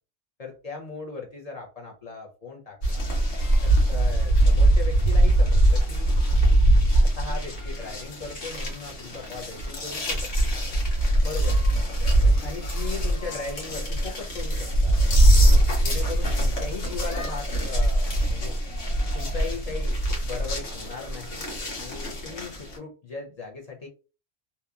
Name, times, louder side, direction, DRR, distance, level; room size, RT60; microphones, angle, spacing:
voice 1, 0.4-3.1 3.6-6.1 7.0-10.5 11.2-11.8 12.2-15.0 15.8-18.6 19.1-21.5 21.8-23.9, left 4 dB, 50° left, -1 dB, 0.4 m, -38 dB
sound 1, 2.8-22.8, right 1 dB, 80° left, 1.3 m, -22 dB
2.8 x 2.2 x 2.3 m, 0.33 s
omnidirectional pair, 1.3 m